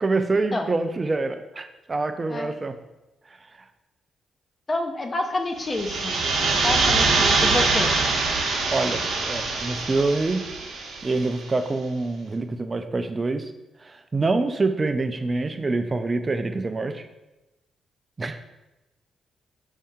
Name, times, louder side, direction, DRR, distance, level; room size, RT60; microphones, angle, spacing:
voice 1, 0.0-2.8 8.7-10.4 11.0-13.5 13.8-17.1 18.2-18.4, right 3 dB, 30° right, 8 dB, 0.4 m, -26 dB
voice 2, 4.7-6.1 6.6-7.9, left 2 dB, 30° left, 4 dB, 0.5 m, -28 dB
sound 1, 5.6-11.3, right 3 dB, 80° right, 0.7 m, -23 dB
5.4 x 2.7 x 3.6 m, 1.0 s
cardioid pair, 90°, 0 cm